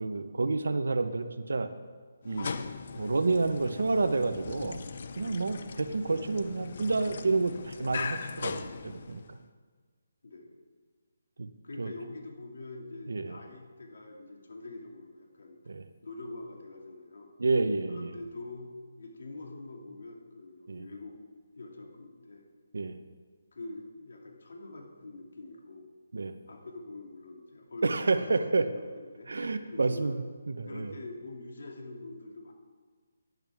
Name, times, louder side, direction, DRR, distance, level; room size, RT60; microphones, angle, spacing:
voice 1, 0.0-1.7 2.2-2.5 2.9-4.8 5.2-9.2 11.4-11.5 11.8-11.9 13.1-13.4 15.7-15.9 17.4-18.1 20.7-20.8 22.7-23.0 26.1-26.3 27.8-28.7 29.3-30.9, right 3 dB, 80° right, 9 dB, 0.9 m, -29 dB
sound 1, 2.2-9.4, left 5 dB, 50° left, 0.6 m, -40 dB
voice 2, 11.6-15.6 16.0-17.3 17.9-21.2 21.5-22.5 23.5-25.9 26.5-30.2 30.6-32.5, left 2 dB, 70° left, 1 dB, 2.3 m, -45 dB
11.5 x 11.0 x 3.6 m, 1.5 s
hypercardioid pair, 165°, 0 cm